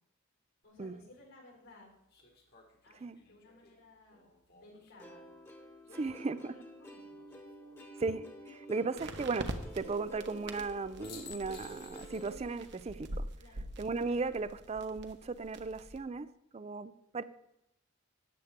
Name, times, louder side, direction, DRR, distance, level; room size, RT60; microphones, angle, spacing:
voice 1, 0.6-1.9 2.8-5.2 5.8-7.2 13.4-13.6, left 2 dB, 80° left, -1 dB, 3.9 m, -58 dB
sound 1, 0.6-0.7 2.1-5.3 7.1-7.8 10.6-10.7 11.0-12.6 12.9-13.0 15.3-15.8, left 7 dB, 45° left, 1.5 m, -56 dB
sound 2, 2.2-2.3 9.0-16.0, right 1 dB, 55° right, 0.9 m, -45 dB
Plucked string instrument, 5.0-12.4, equal, 10° left, 1.2 m, -50 dB
voice 2, 6.0-6.5 8.0-13.3 13.8-16.3 16.5-17.2, right 3 dB, 30° right, 15 dB, 0.4 m, -36 dB
13.5 x 9.3 x 3.6 m, 0.80 s
head